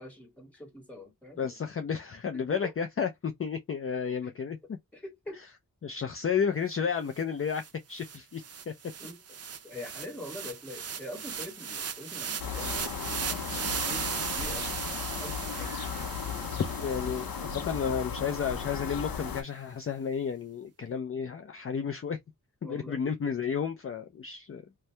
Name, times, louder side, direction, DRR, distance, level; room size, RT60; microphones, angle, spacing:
voice 1, 0.0-1.6 2.5-2.7 4.2-4.3 4.9-5.4 9.0-13.2 13.5-14.7 15.1-15.9 16.6-16.9 22.6-23.0, left 1 dB, 5° left, 1.6 m, -44 dB
voice 2, 1.4-4.6 5.8-7.6 7.9-8.7 16.6-22.2 22.6-24.6, left 6 dB, 40° left, 0.4 m, -32 dB
sound 1, 7.2-7.3 7.5-17.9, right 7 dB, 45° right, 0.5 m, -37 dB
sound 2, 12.4-19.4, left 6 dB, 85° left, 0.7 m, -36 dB
2.7 x 2.2 x 3.1 m
wide cardioid pair, 115°, 35 cm